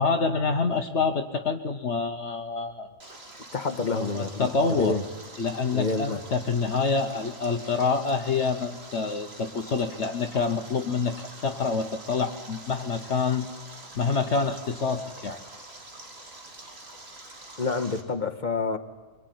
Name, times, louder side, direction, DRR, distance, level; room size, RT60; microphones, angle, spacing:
voice 1, 0.0-2.9 3.8-5.0 5.4-11.2 11.4-13.5 13.9-15.4, left 4 dB, 60° left, 1.4 m, -27 dB
Stream, 3.0-18.0, right 2 dB, 50° right, 2.8 m, -45 dB
voice 2, 3.5-5.0 5.7-6.2 17.6-18.8, left 3 dB, 35° left, 1.5 m, -28 dB
24.5 x 23.5 x 9.5 m
omnidirectional pair, 1.3 m